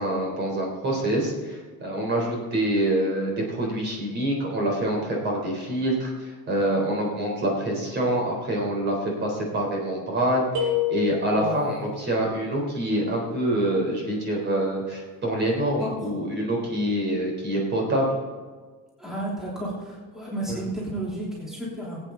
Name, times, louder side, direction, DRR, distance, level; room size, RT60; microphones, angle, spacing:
voice 1, 0.0-18.1 20.5-20.6, right 1 dB, 30° right, 0 dB, 3.7 m, -26 dB
sound 1, 10.5-11.7, left 8 dB, 70° right, 4.5 m, -27 dB
voice 2, 11.3-11.8 15.8-16.0 19.0-22.0, right 1 dB, ahead, -6 dB, 3.2 m, -32 dB
21.0 x 8.8 x 3.9 m, 1.5 s
cardioid pair, 170°, 33 cm